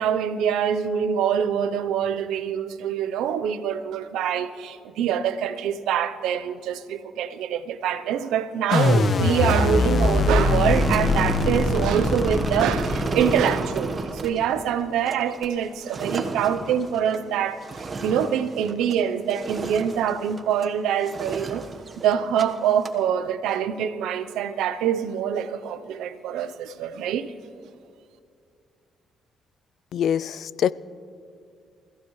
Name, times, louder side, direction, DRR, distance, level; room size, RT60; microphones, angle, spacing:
voice 1, 0.0-21.7 22.0-27.3, right 8 dB, 90° right, 0.7 m, -25 dB
sound 1, 8.7-13.8, left 3 dB, 45° left, 1.3 m, -22 dB
sound 2, 9.4-19.0 19.3-20.7 21.0-22.4 22.7-23.0, right 3 dB, 35° right, 1.3 m, -32 dB
voice 2, 29.9-30.7, left 9 dB, 65° left, 0.4 m, -24 dB
29.0 x 15.5 x 3.2 m
cardioid pair, 90°, 0 cm